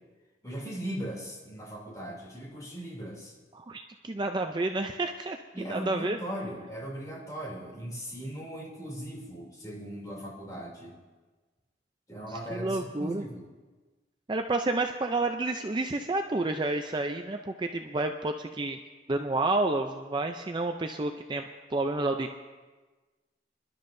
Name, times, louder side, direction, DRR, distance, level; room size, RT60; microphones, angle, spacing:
voice 1, 0.4-3.3 5.5-11.0 12.1-13.5, right 1 dB, 20° left, -3 dB, 3.0 m, -38 dB
voice 2, 3.5-5.4 5.7-6.2 12.5-13.3 14.3-18.8 19.1-21.4 21.7-22.4, right 2 dB, 25° right, 5 dB, 0.4 m, -30 dB
26.0 x 12.0 x 2.6 m, 1.3 s
head